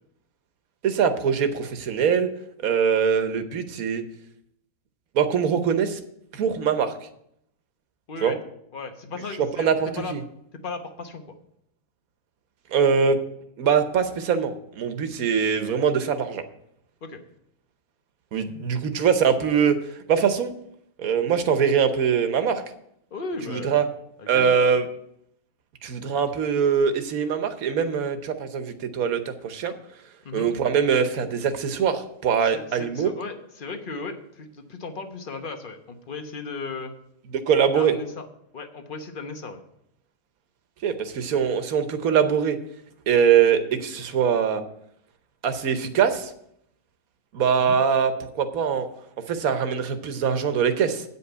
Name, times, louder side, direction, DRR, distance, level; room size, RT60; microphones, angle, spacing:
voice 1, 0.8-2.3 2.6-4.0 5.1-6.0 6.3-6.9 8.2-8.3 9.4-10.2 12.7-13.2 13.6-16.4 18.3-19.8 20.1-20.5 21.0-22.6 23.5-23.8 24.3-24.8 25.8-29.7 30.3-33.1 37.5-37.9 40.8-42.6 43.1-44.6 45.4-46.3 47.3-48.9 49.3-51.0, right 7 dB, 75° right, 9 dB, 1.3 m, -22 dB
voice 2, 8.1-8.4 8.7-9.7 10.0-10.1 10.6-11.3 17.0-17.2 23.1-23.8 24.2-24.5 30.2-30.5 32.4-36.9 37.7-38.3 38.5-39.6 47.6-47.8, left 3 dB, 40° left, 6 dB, 1.1 m, -36 dB
8.8 x 5.5 x 7.9 m, 0.74 s
omnidirectional pair, 1.5 m